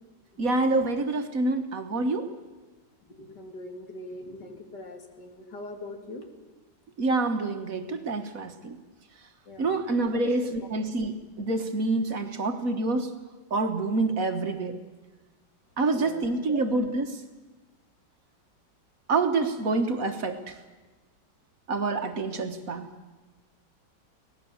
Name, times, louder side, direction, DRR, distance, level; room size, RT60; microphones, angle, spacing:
voice 1, 0.4-2.3 7.0-8.8 9.6-13.1 13.5-14.7 15.8-17.2 19.1-20.5 21.7-22.9, right 3 dB, 50° right, 7 dB, 1.6 m, -27 dB
voice 2, 3.1-6.2 9.5-9.8 10.1-10.7 15.9-16.7, left 2 dB, 65° left, 4 dB, 2.8 m, -42 dB
24.5 x 18.0 x 7.0 m, 1.2 s
omnidirectional pair, 1.9 m